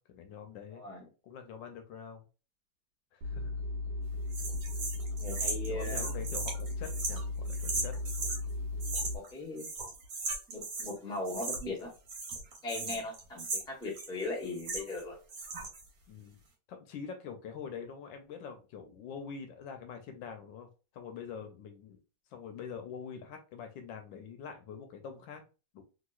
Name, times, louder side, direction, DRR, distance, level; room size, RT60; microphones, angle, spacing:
voice 1, 0.0-2.2 3.1-3.6 5.7-8.0 12.7-13.0 16.1-16.4 16.7-20.7 20.9-22.0 22.3-25.4 25.7-25.8, left 6 dB, 75° left, 6 dB, 1.3 m, -45 dB
voice 2, 0.7-1.0 5.1-6.1 9.3-9.7 10.5-11.9 12.6-15.1, left 2 dB, 5° left, -2 dB, 0.4 m, -38 dB
sound 1, 3.2-9.2, left 2 dB, 80° right, 1.4 m, -36 dB
sound 2, 4.3-8.4 8.8-9.3 9.6-11.0 11.2-11.8 12.1-15.0 15.3-15.8, right 3 dB, 55° right, 1.3 m, -37 dB
3.3 x 2.9 x 2.3 m, 0.32 s
omnidirectional pair, 2.2 m